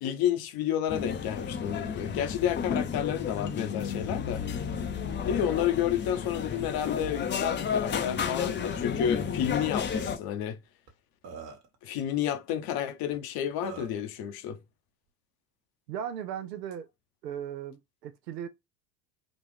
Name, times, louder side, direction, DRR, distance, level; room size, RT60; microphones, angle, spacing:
voice 1, 0.0-4.4 5.2-10.6 11.8-14.6, left 10 dB, 50° left, 0.9 m, -30 dB
sound 1, 0.9-10.2, left 7 dB, 25° left, 0.6 m, -32 dB
Burping eructation, 9.6-9.7 9.9-10.1 10.9-11.0 11.2-11.8 13.1-13.2 13.6-14.0, right 6 dB, 60° right, 1.4 m, -43 dB
voice 2, 15.9-16.9 17.2-18.5, right 9 dB, 80° right, 0.8 m, -37 dB
4.1 x 2.5 x 3.1 m
hypercardioid pair, 70°, 48 cm